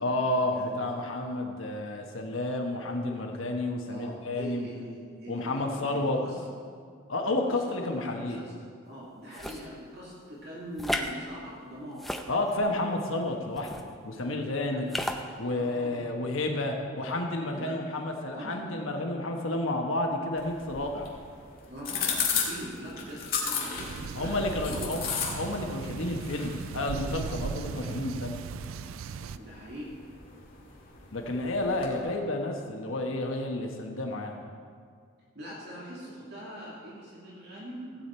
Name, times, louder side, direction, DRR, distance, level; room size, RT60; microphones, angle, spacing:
voice 1, 0.0-4.7 5.3-6.2 7.1-8.4 12.3-14.9 15.4-21.1 24.1-28.3 31.1-34.4, left 2 dB, 70° left, 2 dB, 1.1 m, -31 dB
voice 2, 0.5-0.9 3.9-6.4 7.3-8.5 8.9-12.0 14.7-14.9 15.4-16.0 17.5-17.8 18.3-18.6 21.7-24.9 29.3-29.9 35.3-38.1, equal, 55° right, -6 dB, 2.3 m, -42 dB
sound 1, 9.3-9.7 10.8-11.1 11.9-12.7 13.6-13.8 14.9-15.2, left 1 dB, ahead, 0.5 m, -33 dB
sound 2, 20.4-32.0, left 6 dB, 45° left, 1.9 m, -36 dB
sound 3, 23.8-29.4, right 6 dB, 75° right, 0.4 m, -38 dB
16.0 x 8.4 x 4.4 m, 2.1 s
head